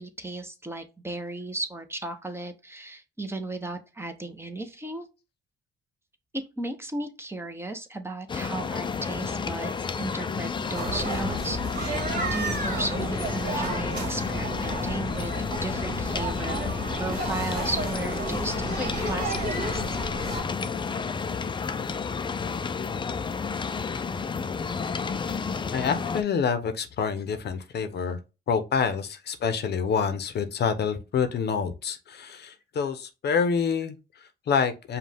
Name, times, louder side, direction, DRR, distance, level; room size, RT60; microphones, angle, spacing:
voice 1, 0.0-5.1 6.3-16.6 17.0-19.8, right 2 dB, 10° right, 0.8 m, -35 dB
sound 1, 8.3-26.2, left 5 dB, 25° left, 0.4 m, -31 dB
sound 2, 10.7-20.4, right 2 dB, 45° right, 1.9 m, -32 dB
voice 2, 25.7-28.2 28.5-35.0, left 6 dB, 55° left, 0.7 m, -27 dB
5.3 x 2.3 x 3.4 m
cardioid pair, 90°, 20 cm